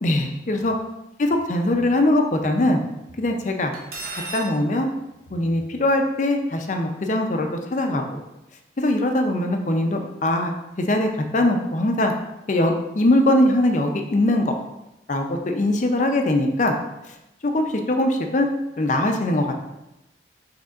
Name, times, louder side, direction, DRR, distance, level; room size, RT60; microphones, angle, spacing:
voice 1, 0.0-0.7 1.2-2.8 3.2-3.7 4.3-4.9 5.3-8.2 8.8-10.5 10.9-12.1 12.5-14.4 15.1-16.7 17.4-18.5 18.8-19.5, left 1 dB, 40° left, 4 dB, 0.5 m, -21 dB
Cutlery silverware, 3.7-4.5, right 3 dB, 55° right, 0.9 m, -33 dB
6.4 x 3.3 x 2.4 m, 0.94 s
head